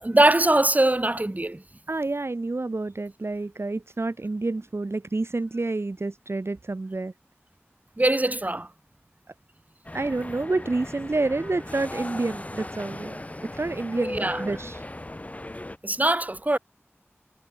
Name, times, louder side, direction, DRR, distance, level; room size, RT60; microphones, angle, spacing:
voice 1, 0.0-1.6 8.0-8.7 14.1-14.4 15.8-16.6, right 1 dB, 35° right, 1.8 m, -22 dB
voice 2, 1.9-7.1 9.9-14.8, right 2 dB, 65° right, 1.3 m, -29 dB
sound 1, 9.8-15.8, left 1 dB, 30° left, 1.5 m, -37 dB
wide cardioid pair, 55°, 5 cm